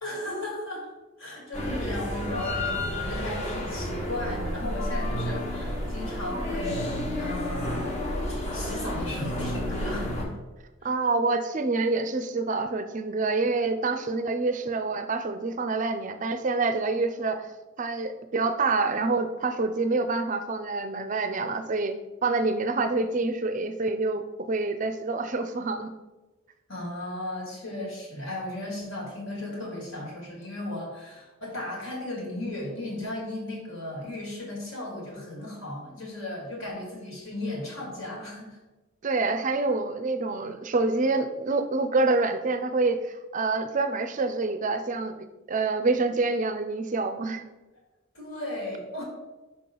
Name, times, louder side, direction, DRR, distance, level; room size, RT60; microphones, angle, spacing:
voice 1, 0.0-0.9 1.2-7.9 8.3-10.4 10.8-10.9 26.7-38.6 48.1-49.0, left 1 dB, 60° left, -2 dB, 2.3 m, -35 dB
sound 1, 1.5-10.3, left 1 dB, 30° left, 1.0 m, -31 dB
voice 2, 10.8-17.5 17.8-21.9 22.2-25.9 39.0-47.4, right 3 dB, 35° right, 9 dB, 0.4 m, -27 dB
5.9 x 5.5 x 3.8 m, 1.1 s
head